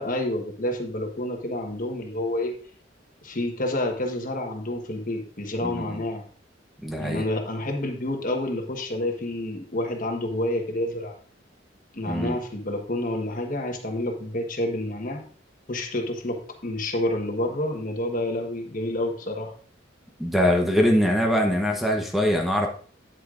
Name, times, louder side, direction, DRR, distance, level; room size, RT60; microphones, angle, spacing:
voice 1, 0.0-2.6 3.2-6.3 7.0-11.1 11.9-15.2 15.7-19.5, left 1 dB, 45° left, 3 dB, 1.3 m, -29 dB
voice 2, 5.6-6.0 6.8-7.3 12.1-12.4 20.2-22.7, equal, ahead, 1 dB, 0.9 m, -23 dB
9.4 x 8.2 x 2.5 m, 0.43 s
head